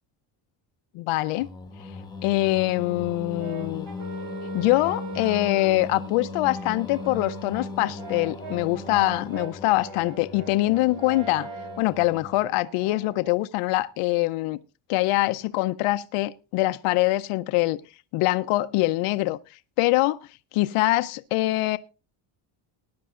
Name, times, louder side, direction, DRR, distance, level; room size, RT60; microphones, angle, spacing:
voice 1, 0.9-1.5 2.2-3.9 4.5-11.5 11.8-14.6 14.9-17.8 18.1-19.4 19.8-20.2 20.5-21.8, left 18 dB, 85° left, 0.7 m, -24 dB
Singing, 1.4-12.5, left 3 dB, 10° left, 1.0 m, -38 dB
Brass instrument, 3.4-5.9 6.5-13.4, right 5 dB, 65° right, 2.0 m, -41 dB
20.0 x 10.5 x 2.5 m
cardioid pair, 145°, 50 cm